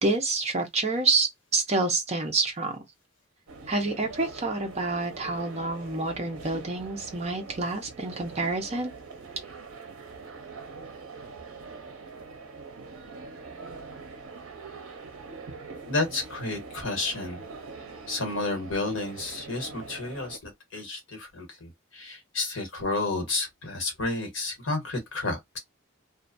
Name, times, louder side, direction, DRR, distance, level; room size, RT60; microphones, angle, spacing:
voice 1, 0.0-2.8 3.7-8.9, right 3 dB, 30° right, 0.6 m, -28 dB
sound 1, 3.5-20.4, right 4 dB, 80° right, 0.6 m, -43 dB
voice 2, 15.8-17.4 18.1-25.6, left 3 dB, 60° left, 1.1 m, -31 dB
2.5 x 2.1 x 2.5 m
head